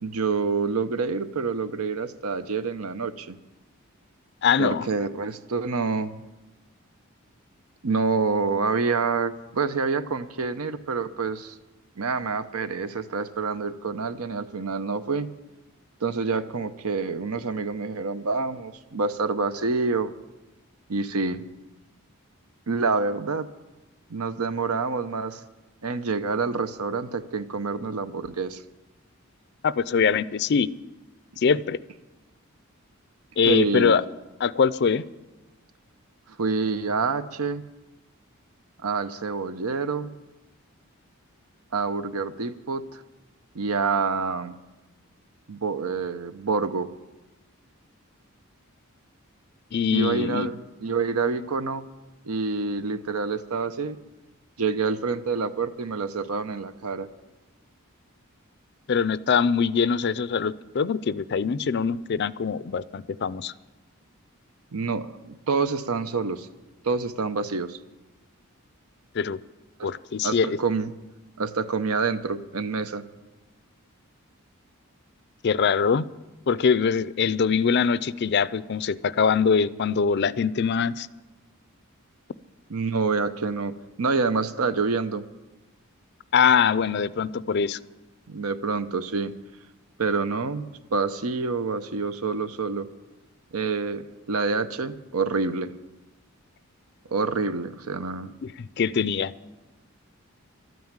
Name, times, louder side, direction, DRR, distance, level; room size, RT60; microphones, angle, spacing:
voice 1, 0.0-3.4 4.6-6.2 7.8-11.5 12.0-15.3 16.0-20.1 20.9-21.4 22.7-23.5 24.1-25.4 25.8-28.6 33.4-33.9 36.3-37.6 38.8-40.1 41.7-43.0 43.5-44.6 45.5-46.9 49.9-51.9 52.2-54.0 54.6-57.1 64.7-66.5 66.8-67.8 69.8-69.9 70.2-70.9 71.4-73.0 82.7-85.2 88.3-89.3 90.0-92.9 93.5-95.7 97.1-98.3, right 4 dB, 85° right, 11 dB, 0.8 m, -27 dB
voice 2, 4.4-4.8 29.6-30.7 31.4-31.8 33.4-34.0 34.4-35.0 49.7-50.5 58.9-63.5 69.1-69.4 69.8-70.6 75.4-76.1 76.5-81.1 86.3-87.8 98.6-99.3, left 6 dB, 50° left, 17 dB, 0.4 m, -23 dB
12.5 x 9.4 x 8.8 m, 1.1 s
head